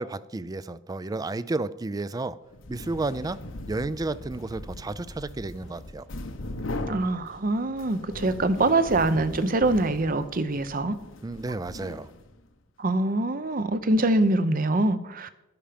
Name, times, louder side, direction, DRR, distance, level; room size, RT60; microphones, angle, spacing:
voice 1, 0.0-2.4 2.7-3.4 3.7-6.1 11.2-12.1, right 2 dB, 20° right, 17 dB, 0.4 m, -32 dB
sound 1, 2.5-12.5, left 1 dB, 80° left, 1.0 m, -39 dB
voice 2, 6.9-11.0 12.8-15.3, right 2 dB, 45° right, 12 dB, 0.7 m, -24 dB
11.5 x 10.5 x 5.1 m, 0.95 s
head